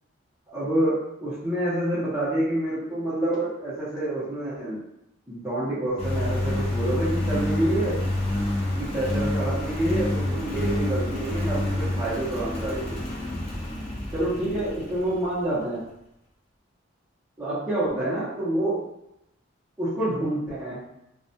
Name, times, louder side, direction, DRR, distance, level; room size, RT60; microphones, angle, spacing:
voice 1, 0.5-4.8 5.3-8.0 8.7-13.0 14.1-15.8 17.4-18.8 19.8-20.8, right 1 dB, 15° right, -14 dB, 0.6 m, -27 dB
Engine, 6.0-15.4, left 1 dB, 30° left, 0.4 m, -28 dB
2.3 x 2.1 x 2.6 m, 0.83 s
head